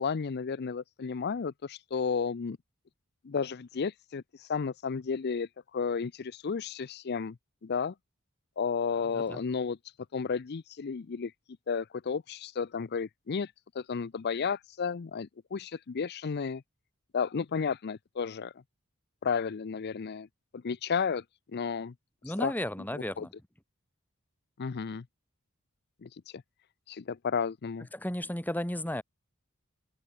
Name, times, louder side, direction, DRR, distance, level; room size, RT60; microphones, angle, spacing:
voice 1, 0.0-2.6 3.2-4.2 4.5-7.4 7.6-7.9 8.6-9.8 10.1-11.3 11.7-16.6 17.1-18.5 19.2-20.3 20.5-21.2 21.5-21.9 22.4-22.5 22.9-23.3 24.6-25.1 26.0-26.4 26.9-27.9, left 5 dB, 50° left, 0.5 m, -32 dB
voice 2, 8.9-9.4 22.2-23.3 27.9-29.0, left 1 dB, 10° left, 2.9 m, -34 dB
head